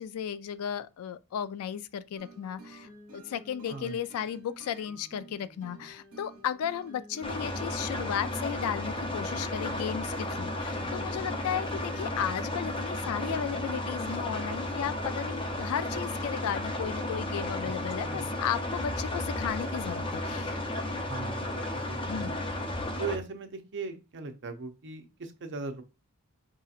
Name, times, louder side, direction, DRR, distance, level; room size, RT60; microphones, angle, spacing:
voice 1, 0.0-20.6 22.1-22.3, left 8 dB, 70° left, 0.3 m, -35 dB
sound 1, 2.2-15.0, right 1 dB, 85° right, 1.2 m, -51 dB
voice 2, 3.7-4.0 18.0-18.3 21.1-22.3 23.0-25.8, right 4 dB, 55° right, 0.6 m, -39 dB
sound 2, 7.2-23.2, left 1 dB, 25° left, 0.6 m, -33 dB
4.8 x 2.8 x 2.4 m
head